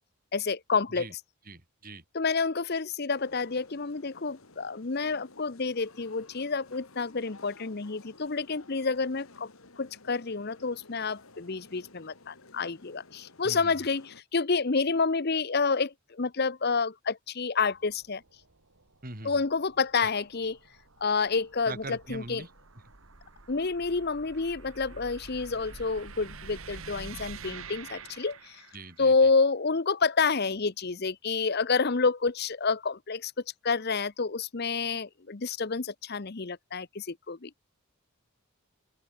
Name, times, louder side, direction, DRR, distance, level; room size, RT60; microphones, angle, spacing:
voice 1, 0.3-1.1 2.1-9.5 9.8-18.2 19.2-20.6 21.0-22.4 23.5-28.6 29.0-33.3 33.6-37.5, left 4 dB, 45° left, 0.8 m, -29 dB
voice 2, 1.5-2.0 13.4-13.7 19.0-19.4 20.0-20.1 21.7-22.5 28.7-29.1, right 2 dB, 40° right, 4.6 m, -41 dB
sound 1, 3.1-14.2, left 3 dB, 70° left, 2.7 m, -54 dB
sound 2, 17.6-29.0, right 4 dB, 70° right, 2.4 m, -48 dB
open air
head